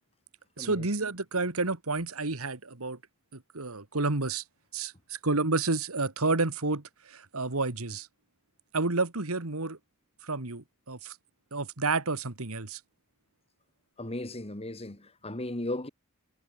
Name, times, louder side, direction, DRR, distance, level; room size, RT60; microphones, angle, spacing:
voice 1, 0.6-3.0 3.3-4.4 4.7-8.1 8.7-9.8 10.2-11.1 11.5-12.8, right 3 dB, 80° right, 2.1 m, -30 dB
voice 2, 14.0-15.9, left 1 dB, 30° left, 2.6 m, -36 dB
head